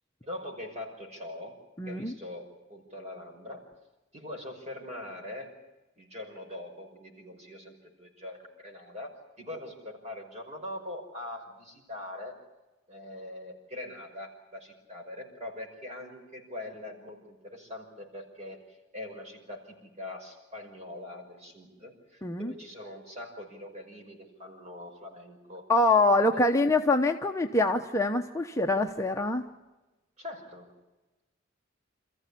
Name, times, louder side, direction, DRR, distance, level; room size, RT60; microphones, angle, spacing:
voice 1, 0.2-1.6 1.9-3.6 4.1-5.5 6.0-9.1 9.4-12.4 12.9-25.7 26.3-26.6 30.2-30.7, left 1 dB, 35° right, 2 dB, 5.8 m, -42 dB
voice 2, 1.8-2.1 22.2-22.5 25.7-29.5, left 2 dB, 15° left, 3 dB, 0.9 m, -25 dB
27.5 x 15.0 x 9.9 m, 1.1 s
head